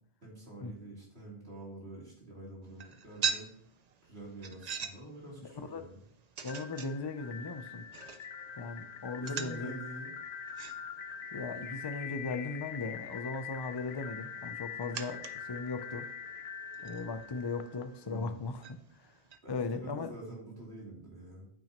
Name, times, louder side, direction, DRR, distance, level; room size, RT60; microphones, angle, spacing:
voice 1, 0.2-3.5 4.0-6.0 9.2-10.1 18.1-18.4 19.4-21.5, right 2 dB, 80° right, -4 dB, 3.5 m, -46 dB
sound 1, 2.6-19.4, right 6 dB, 50° right, 0.6 m, -44 dB
voice 2, 5.4-5.8 6.4-7.9 8.6-9.7 11.3-16.1 16.8-19.2 19.5-20.2, left 3 dB, 35° left, 8 dB, 0.5 m, -38 dB
sound 2, 6.4-18.3, left 7 dB, 85° left, 0.9 m, -44 dB
8.8 x 8.7 x 3.0 m, 0.66 s
omnidirectional pair, 1.0 m